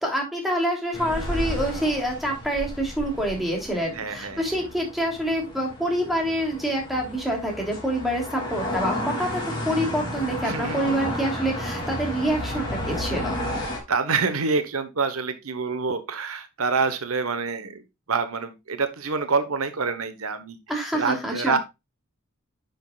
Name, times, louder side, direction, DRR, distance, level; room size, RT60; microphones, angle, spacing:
voice 1, 0.0-13.4 20.7-21.6, right 1 dB, ahead, 0 dB, 3.0 m, -26 dB
sound 1, 0.9-13.8, left 1 dB, 20° left, 3.5 m, -32 dB
voice 2, 3.9-4.4 10.4-11.0 13.9-17.8 18.1-20.6 20.9-21.6, right 4 dB, 85° right, 10 dB, 1.1 m, -26 dB
10.5 x 6.4 x 2.4 m, 0.23 s
head